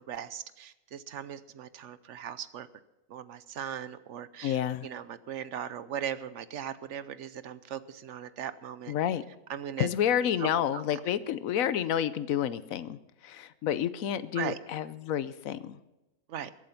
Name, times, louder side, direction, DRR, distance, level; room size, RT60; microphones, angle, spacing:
voice 1, 0.0-2.7 3.1-8.9 9.5-9.9 10.4-11.0 14.4-14.6 16.3-16.5, right 9 dB, 65° right, 14 dB, 1.0 m, -39 dB
voice 2, 4.4-4.9 8.9-9.2 9.8-13.0 13.2-15.8, left 10 dB, 85° left, 15 dB, 1.1 m, -29 dB
22.0 x 7.8 x 5.8 m, 1.0 s
omnidirectional pair, 1.4 m